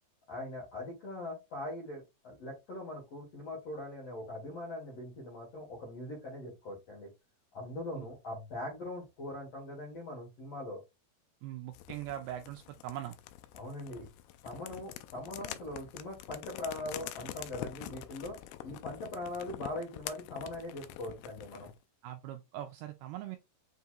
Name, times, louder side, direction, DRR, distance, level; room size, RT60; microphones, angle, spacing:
voice 1, 0.3-7.1 7.5-10.8 13.5-14.1 14.4-18.4 18.6-21.7, left 1 dB, 65° left, 1.6 m, -41 dB
voice 2, 11.4-13.2 22.0-23.4, right 12 dB, 85° right, 2.2 m, -41 dB
sound 1, 11.7-21.8, left 13 dB, 90° left, 2.1 m, -46 dB
6.9 x 2.8 x 2.2 m
omnidirectional pair, 4.9 m